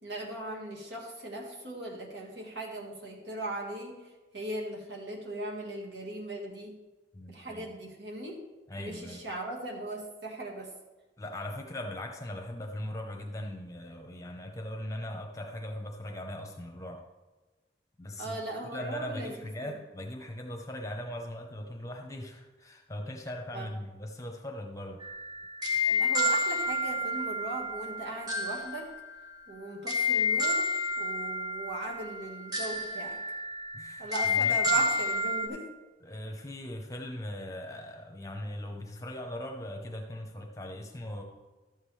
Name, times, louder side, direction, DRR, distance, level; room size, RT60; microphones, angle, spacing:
voice 1, 0.0-6.8 7.3-8.4 8.8-10.7 18.2-19.7 23.5-23.8 25.9-28.9 29.5-30.7 31.0-33.2 34.0-35.7, right 1 dB, 70° right, 0 dB, 1.7 m, -39 dB
voice 2, 7.1-7.7 8.7-9.2 11.2-17.1 18.0-18.4 18.7-25.0 33.7-34.8 36.0-41.2, left 1 dB, 15° left, 3 dB, 0.8 m, -39 dB
sound 1, 25.0-35.5, left 2 dB, 20° right, 1.1 m, -30 dB
12.5 x 7.4 x 3.3 m, 1.2 s
head